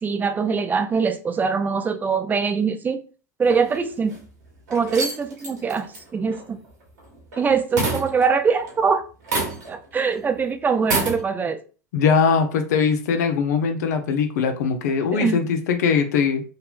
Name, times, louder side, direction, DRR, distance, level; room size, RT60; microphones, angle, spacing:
voice 1, 0.0-3.0 3.4-4.2 4.7-6.6 7.4-9.0 9.7-11.6 15.1-15.4, right 5 dB, 20° right, 0.3 m, -23 dB
sound 1, 3.5-4.2 4.7-7.4 7.8-8.8 9.2-9.9 10.1-10.2 10.8-11.2, right 3 dB, 80° right, 1.1 m, -28 dB
voice 2, 11.9-16.4, left 6 dB, 70° left, 0.5 m, -21 dB
2.9 x 2.2 x 2.4 m
hypercardioid pair, 90°, 9 cm